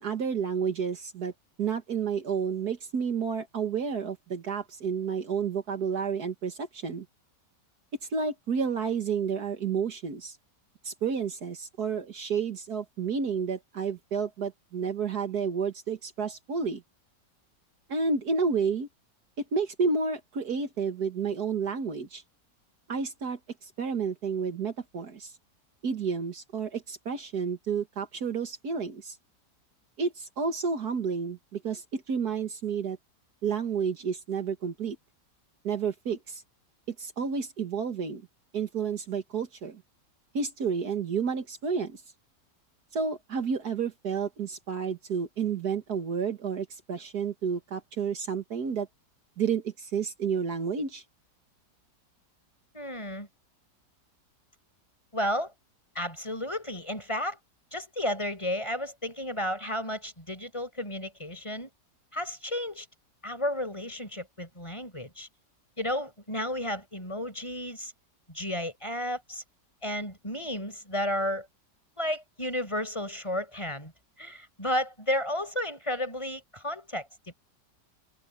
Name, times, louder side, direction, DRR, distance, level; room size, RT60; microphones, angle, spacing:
voice 1, 0.0-1.3 1.6-7.1 8.1-10.4 10.8-16.8 17.9-18.9 19.4-22.2 22.9-25.3 25.8-29.2 30.0-33.0 33.4-35.0 35.6-36.4 36.9-38.2 38.5-39.8 40.3-42.0 42.9-48.9 49.4-51.0, right 6 dB, 65° right, 2.0 m, -30 dB
voice 2, 52.7-53.3 55.1-55.5 55.9-57.4 57.7-61.7 62.1-62.9 63.2-65.3 65.8-67.9 68.3-69.4 69.8-71.5 72.0-73.9 74.2-77.3, left 1 dB, 15° left, 6.3 m, -32 dB
omnidirectional pair, 1.8 m